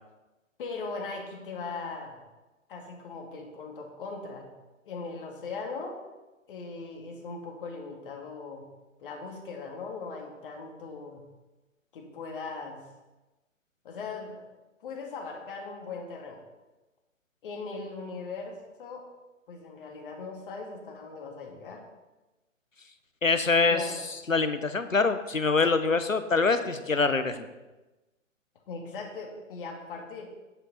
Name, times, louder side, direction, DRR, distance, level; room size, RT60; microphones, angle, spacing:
voice 1, 0.6-2.2 2.7-4.5 4.8-6.0 6.5-8.6 9.0-11.2 11.9-12.8 13.8-14.5 14.8-16.4 17.4-19.0 19.5-21.8 23.7-24.0 28.7-30.3, left 4 dB, 45° left, 2 dB, 2.3 m, -39 dB
voice 2, 23.2-23.8 24.3-27.5, left 4 dB, 90° left, 10 dB, 1.0 m, -24 dB
10.5 x 10.0 x 4.1 m, 1.1 s
figure-of-eight pair, 125°, 39 cm